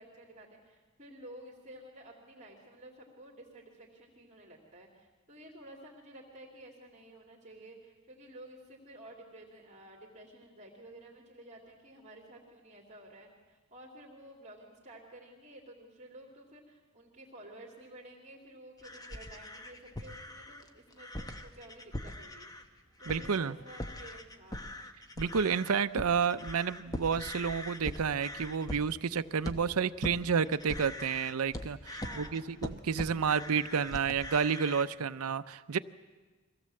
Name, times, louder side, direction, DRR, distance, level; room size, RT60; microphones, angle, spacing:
voice 1, 0.0-24.8 32.0-32.5, right 1 dB, 35° right, -2 dB, 2.8 m, -52 dB
sound 1, 18.8-22.7 23.0-23.4 23.7-34.8, left 1 dB, 15° left, 0.9 m, -42 dB
voice 2, 23.1-23.6 25.2-35.8, right 6 dB, 80° right, 12 dB, 0.6 m, -30 dB
23.0 x 16.5 x 7.7 m, 1.3 s
head